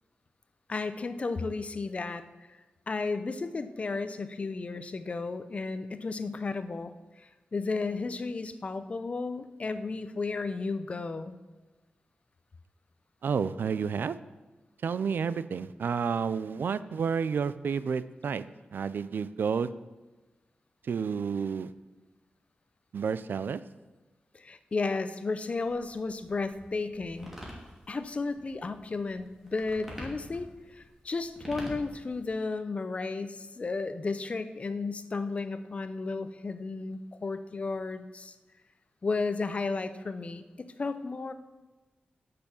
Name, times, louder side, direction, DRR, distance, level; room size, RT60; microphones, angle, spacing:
voice 1, 0.7-2.3 2.9-11.4 24.3-27.3 27.9-38.3 39.0-41.3, left 3 dB, 40° left, 11 dB, 0.6 m, -33 dB
voice 2, 13.2-14.2 14.8-18.4 18.7-19.7 20.8-21.7 22.9-23.6, right 6 dB, 80° right, 15 dB, 0.4 m, -30 dB
sound 1, 25.4-32.3, equal, 10° right, 2.7 m, -46 dB
10.0 x 6.8 x 7.1 m, 1.2 s
wide cardioid pair, 150°, 3 cm